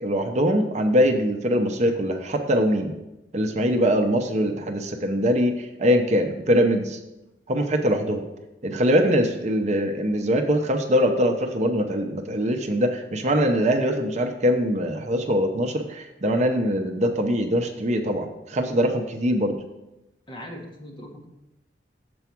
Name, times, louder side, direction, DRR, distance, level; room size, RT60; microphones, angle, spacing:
voice 1, 0.0-2.9 3.3-7.0 7.5-8.2 8.6-19.6, equal, 40° right, 4 dB, 0.6 m, -22 dB
voice 2, 20.3-21.3, equal, 30° left, -1 dB, 1.4 m, -39 dB
6.9 x 4.7 x 5.9 m, 0.94 s
head